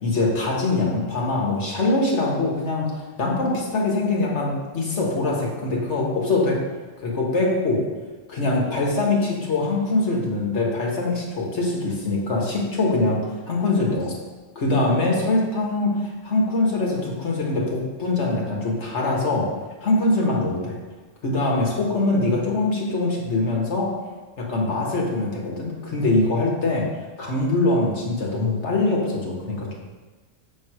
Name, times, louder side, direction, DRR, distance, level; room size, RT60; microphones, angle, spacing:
voice 1, 0.0-6.6 7.0-7.8 8.3-14.1 14.5-19.5 19.8-20.8 21.2-23.9 24.4-26.9 27.2-29.7, left 2 dB, 75° left, -2 dB, 1.7 m, -23 dB
7.2 x 4.8 x 4.8 m, 1.3 s
omnidirectional pair, 1.2 m